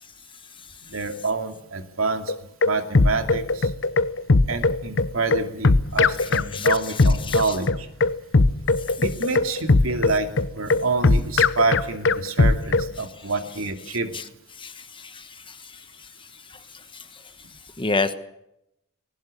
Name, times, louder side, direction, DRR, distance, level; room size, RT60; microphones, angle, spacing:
voice 1, 0.9-2.3 2.6-3.7 4.5-7.9 9.0-14.1, right 3 dB, 90° right, 6 dB, 2.6 m, -27 dB
sound 1, 2.3-12.9, left 3 dB, 65° left, 0.9 m, -19 dB
voice 2, 6.2-6.7 7.3-7.4 8.9-9.0 14.1-14.2 14.6-15.6 16.5-16.6 16.9-17.0 17.8-18.1, left 3 dB, 25° left, 10 dB, 1.3 m, -29 dB
20.0 x 18.5 x 8.5 m, 0.84 s
head